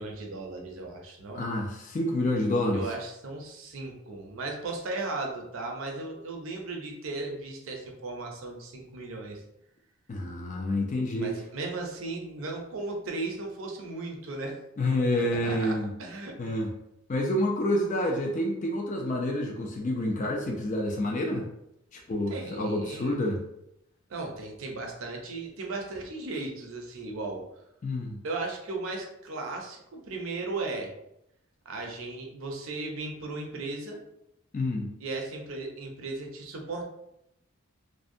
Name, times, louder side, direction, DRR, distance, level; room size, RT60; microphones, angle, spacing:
voice 1, 0.0-1.4 2.7-9.4 11.2-14.6 15.1-15.7 16.0-16.5 22.3-23.2 24.1-27.4 28.2-30.9 31.7-34.0 35.0-36.8, right 3 dB, 65° right, 1 dB, 0.5 m, -36 dB
voice 2, 1.3-2.9 10.1-11.4 14.8-15.9 16.4-16.7 17.1-21.5 21.9-23.4 27.8-28.2 34.5-34.9, left 1 dB, 35° left, 0 dB, 0.3 m, -28 dB
2.6 x 2.1 x 2.5 m, 0.82 s
head